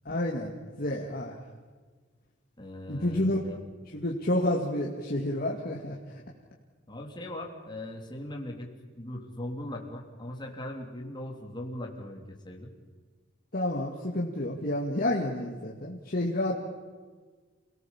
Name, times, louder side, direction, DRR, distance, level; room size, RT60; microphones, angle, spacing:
voice 1, 0.1-0.5 0.8-1.4 2.9-3.4 3.9-6.0 13.5-16.6, left 1 dB, 50° left, -2 dB, 2.3 m, -29 dB
voice 2, 2.6-3.6 6.9-8.7 8.9-12.7, left 1 dB, 25° left, 0 dB, 3.3 m, -39 dB
29.0 x 18.0 x 7.3 m, 1.4 s
head